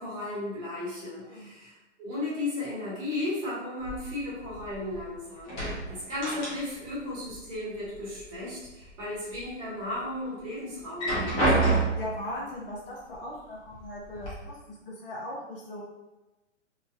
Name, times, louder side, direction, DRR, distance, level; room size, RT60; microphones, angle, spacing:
voice 1, 0.0-11.6, left 2 dB, 25° right, -8 dB, 1.1 m, -35 dB
voice 2, 1.2-1.5 11.9-15.8, left 1 dB, 50° left, -4 dB, 0.8 m, -39 dB
sound 1, 3.8-5.1 5.4-7.0 7.2-8.2 8.7-9.4 9.9-10.0 10.8-12.2 13.1-13.2 13.7-14.3, right 2 dB, 15° left, 0.6 m, -29 dB
3.0 x 2.2 x 2.5 m, 1.1 s
figure-of-eight pair, 130°, 37 cm